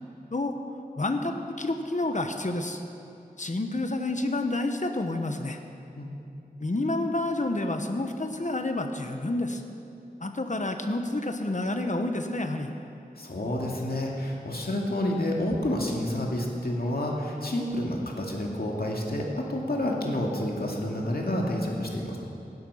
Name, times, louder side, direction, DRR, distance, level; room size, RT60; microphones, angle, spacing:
voice 1, 1.0-2.8 3.4-5.6 6.6-9.6 10.2-12.7, left 2 dB, 50° left, 5 dB, 1.2 m, -29 dB
voice 2, 13.2-22.2, left 1 dB, 75° left, -1 dB, 2.3 m, -29 dB
16.0 x 12.0 x 5.7 m, 2.7 s
wide cardioid pair, 50°, 16 cm